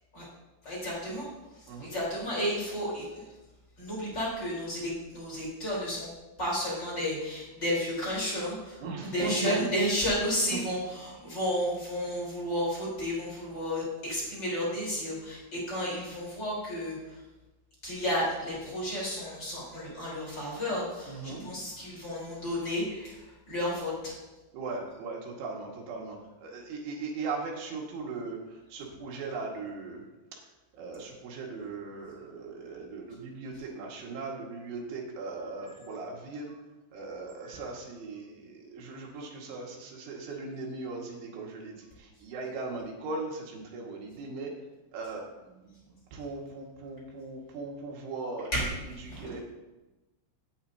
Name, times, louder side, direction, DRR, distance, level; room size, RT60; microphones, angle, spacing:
voice 1, 0.6-1.3 1.6-3.2 3.8-6.1 6.4-17.2 17.8-24.2 48.5-48.6 49.0-49.3, equal, 25° left, -6 dB, 4.4 m, -32 dB
voice 2, 8.8-9.6 10.5-10.6 21.1-21.4 24.5-30.0 30.7-36.6 36.9-44.5 44.9-49.4, right 3 dB, 80° right, -1 dB, 4.4 m, -38 dB
17.5 x 8.8 x 2.9 m, 1.1 s
omnidirectional pair, 5.3 m